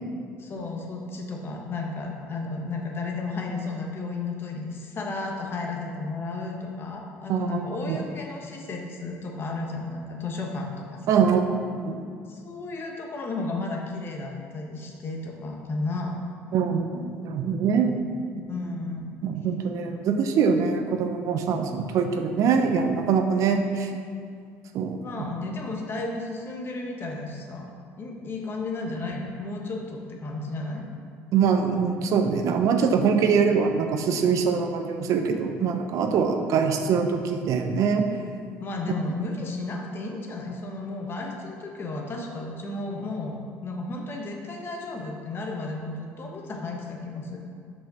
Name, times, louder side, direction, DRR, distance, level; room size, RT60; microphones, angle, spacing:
voice 1, 0.4-11.2 12.3-16.3 18.5-19.1 25.0-30.9 38.6-47.4, left 3 dB, 40° left, 0 dB, 1.3 m, -33 dB
voice 2, 7.3-8.0 11.1-12.0 16.5-17.9 19.2-23.9 24.7-25.0 31.3-38.1, right 6 dB, 65° right, 5 dB, 0.7 m, -23 dB
5.6 x 5.1 x 6.3 m, 2.3 s
supercardioid pair, 95°, 6 cm